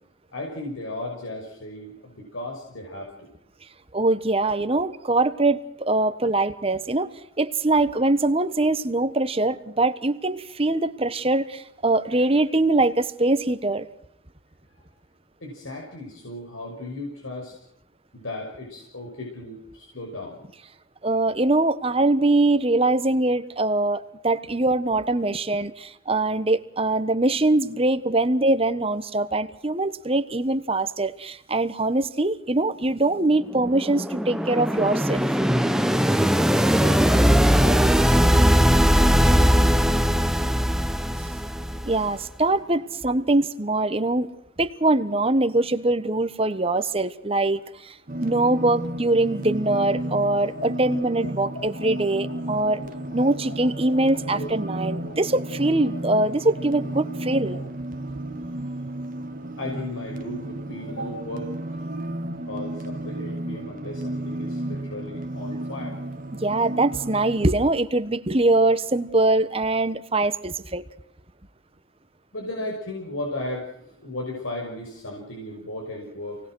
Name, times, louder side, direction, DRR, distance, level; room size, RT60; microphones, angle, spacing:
voice 1, 0.3-3.3 15.4-17.5 18.1-20.4 36.7-37.9 38.2-39.5 59.6-61.8 62.4-66.0 72.3-76.4, left 1 dB, 90° left, 0 dB, 5.9 m, -35 dB
voice 2, 3.9-7.1 7.4-13.9 21.0-35.3 36.5-36.6 41.8-44.3 44.6-47.9 48.2-52.8 53.1-57.6 66.4-70.8, right 2 dB, 30° right, 12 dB, 1.2 m, -23 dB
sound 1, 33.3-42.2, equal, ahead, 0.8 m, -20 dB
sound 2, 48.1-67.5, right 1 dB, 45° right, 1.4 m, -33 dB
sound 3, 50.0-57.7, left 1 dB, 65° left, 3.3 m, -42 dB
28.0 x 19.5 x 6.3 m, 0.75 s
head